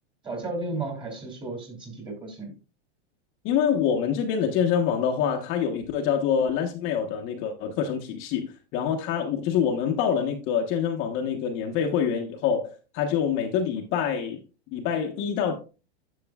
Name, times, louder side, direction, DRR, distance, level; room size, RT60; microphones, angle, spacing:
voice 1, 0.2-2.6, right 2 dB, 15° right, 2.7 m, -34 dB
voice 2, 3.4-14.4 14.7-15.5, left 7 dB, 35° left, 1.1 m, -26 dB
10.5 x 6.9 x 2.3 m
supercardioid pair, 140°, 33 cm